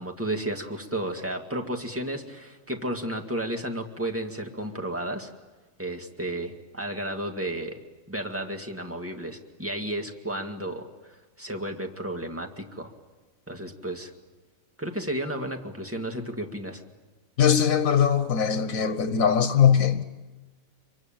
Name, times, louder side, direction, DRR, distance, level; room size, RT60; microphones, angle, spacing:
voice 1, 0.0-5.3 5.8-7.8 8.1-10.9 11.4-12.9 13.5-14.1 14.8-16.8, right 1 dB, 10° right, 2.2 m, -32 dB
voice 2, 17.4-20.0, left 7 dB, 90° left, 1.6 m, -21 dB
26.0 x 24.0 x 9.0 m
omnidirectional pair, 1.4 m